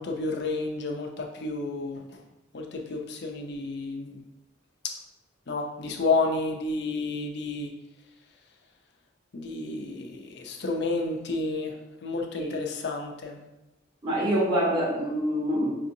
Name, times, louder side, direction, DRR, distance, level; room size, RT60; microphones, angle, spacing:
voice 1, 0.0-2.2 2.5-4.2 5.5-7.7 9.3-11.8 12.0-13.4, left 3 dB, 55° left, 2 dB, 0.5 m, -30 dB
voice 2, 14.0-15.7, right 1 dB, 25° right, -7 dB, 1.2 m, -25 dB
5.4 x 2.6 x 2.6 m, 0.98 s
head